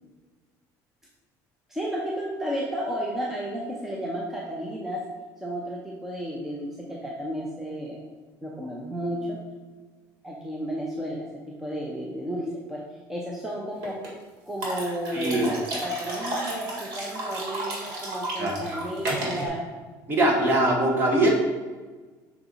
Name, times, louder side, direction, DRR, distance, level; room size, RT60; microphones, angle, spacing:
voice 1, 1.7-5.0 5.4-8.0 8.4-9.4 10.2-12.8 13.1-14.0 14.5-19.6, equal, 5° right, -3 dB, 0.7 m, -32 dB
sound 1, 13.8-14.1 14.6-19.5, right 1 dB, 85° right, 1.8 m, -32 dB
voice 2, 15.1-15.4 18.4-18.6 20.1-21.3, right 1 dB, 30° right, 0 dB, 1.2 m, -22 dB
5.8 x 4.2 x 4.0 m, 1.3 s
cardioid pair, 150°, 8 cm